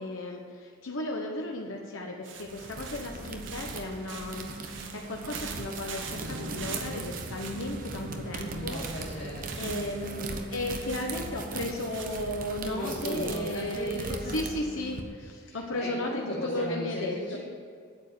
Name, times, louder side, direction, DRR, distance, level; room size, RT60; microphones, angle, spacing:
voice 1, 0.0-8.8 9.6-17.4, left 1 dB, 80° left, 0 dB, 1.1 m, -35 dB
sound 1, 2.2-8.1 8.7-10.1 10.8-12.2, right 6 dB, 65° right, 1.2 m, -44 dB
sound 2, 2.4-15.0, right 3 dB, 45° right, 1.0 m, -39 dB
sound 3, 5.5-13.3 13.6-13.7 14.2-14.3, equal, 90° right, 1.0 m, -44 dB
voice 2, 8.5-10.4 12.7-14.4 15.4-17.4, equal, 40° left, -9 dB, 2.8 m, -37 dB
8.8 x 7.9 x 8.9 m, 2.2 s
head